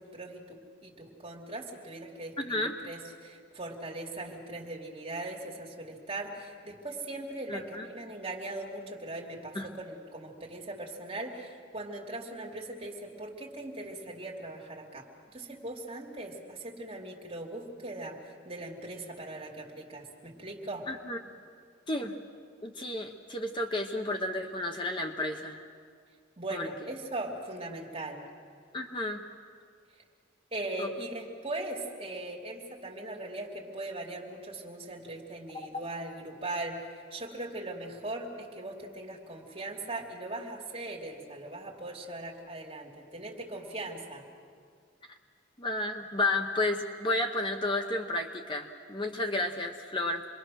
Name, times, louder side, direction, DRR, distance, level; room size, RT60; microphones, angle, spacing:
voice 1, 0.0-20.9 26.4-28.3 29.9-30.0 30.5-44.3, right 2 dB, 30° right, -1 dB, 2.9 m, -40 dB
voice 2, 2.4-2.7 7.5-7.9 9.5-9.7 20.9-21.2 21.9-22.2 22.6-25.7 26.5-26.7 28.7-29.2 30.8-30.9 35.7-35.8 45.6-50.2, left 2 dB, 25° left, 4 dB, 1.0 m, -32 dB
28.0 x 22.0 x 6.4 m, 2.2 s
head